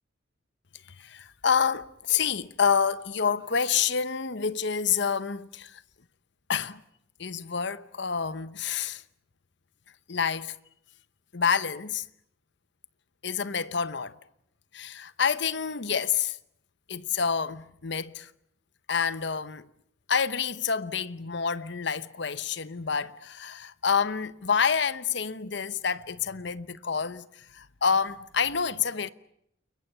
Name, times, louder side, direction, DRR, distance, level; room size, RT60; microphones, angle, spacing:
voice 1, 1.0-5.8 6.5-6.8 7.2-9.0 10.1-10.5 11.3-12.1 13.2-14.2 14.7-16.4 16.9-18.3 18.9-19.7 20.1-29.1, left 6 dB, 60° left, 0.9 m, -28 dB
29.5 x 23.0 x 6.8 m
head